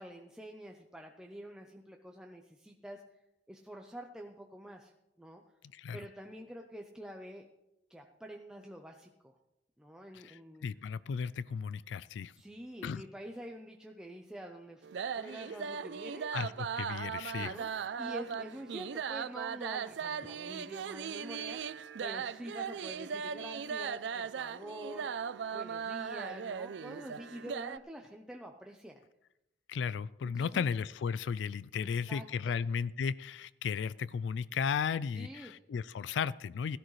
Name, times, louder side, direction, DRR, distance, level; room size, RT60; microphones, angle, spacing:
voice 1, 0.0-3.0 3.5-4.9 5.2-5.4 5.9-7.5 7.9-9.3 9.8-10.6 12.4-16.4 17.3-17.7 18.0-25.3 25.5-29.0 30.3-30.6 31.8-32.6 35.1-35.6, equal, 5° right, 0.6 m, -47 dB
voice 2, 10.1-12.3 12.8-13.0 15.2-15.3 16.3-17.6 29.7-36.8, left 6 dB, 75° left, 0.3 m, -35 dB
sound 1, 14.8-27.8, right 7 dB, 70° right, 0.4 m, -38 dB
16.5 x 12.5 x 3.2 m
head